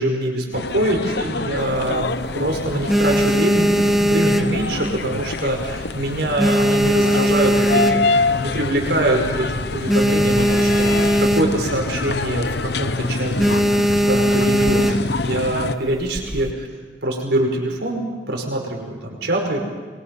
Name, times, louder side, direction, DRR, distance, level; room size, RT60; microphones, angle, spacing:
voice 1, 0.0-2.1 2.4-13.6 14.1-16.7 17.0-19.6, right 1 dB, 65° right, 1 dB, 5.3 m, -24 dB
sound 1, 0.5-15.7, left 3 dB, 60° left, 0.8 m, -26 dB
sound 2, 1.6-2.3 2.7-5.2 5.5-5.9 6.2-8.4 8.9-9.0 9.1-9.3 9.6-11.8 12.1-12.4 12.7-12.9 13.4-15.2 15.9-16.5, equal, ahead, 0.7 m, -19 dB
28.5 x 23.0 x 5.5 m, 1.4 s
head